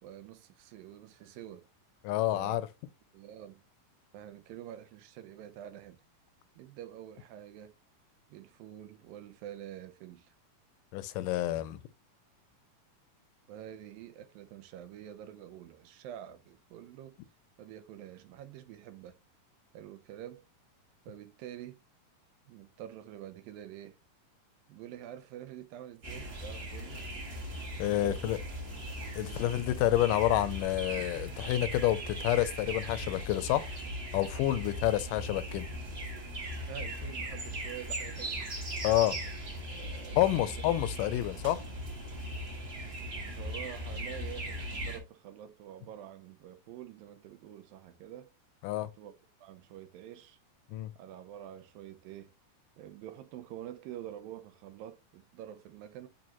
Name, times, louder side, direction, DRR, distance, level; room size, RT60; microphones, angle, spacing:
voice 1, 0.0-1.7 2.3-2.6 3.1-3.6 4.1-6.0 6.6-7.7 8.3-10.3 13.5-17.2 17.6-19.2 19.7-20.5 21.1-21.8 22.5-24.0 24.7-27.1 28.0-28.3 29.2-29.8 36.6-38.5 39.6-40.6 41.0-41.1 43.0-48.3 49.0-49.1 49.4-50.4 51.0-52.3 52.8-56.1, right 11 dB, 85° right, 2.4 m, -47 dB
voice 2, 2.0-2.7 10.9-11.8 27.8-28.4 29.2-33.7 34.1-35.7 38.8-39.2 40.2-41.6 48.6-48.9 50.7-50.9, left 14 dB, 80° left, 2.1 m, -29 dB
sound 1, 26.0-45.0, equal, 50° right, 0.7 m, -39 dB
8.7 x 3.7 x 2.9 m
omnidirectional pair, 4.0 m